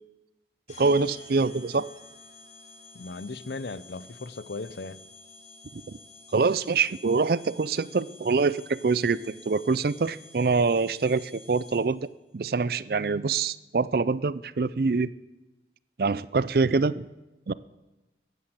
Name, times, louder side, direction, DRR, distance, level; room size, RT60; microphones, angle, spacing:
sound 1, 0.7-12.1, left 3 dB, 45° left, 5.0 m, -50 dB
voice 1, 0.8-1.9 5.7-6.0 6.3-12.1 12.3-15.1 16.0-17.1 17.5-17.6, right 4 dB, 55° right, 18 dB, 0.5 m, -25 dB
voice 2, 2.9-5.0, left 3 dB, 70° left, 16 dB, 0.6 m, -37 dB
15.5 x 10.5 x 7.6 m, 1.0 s
head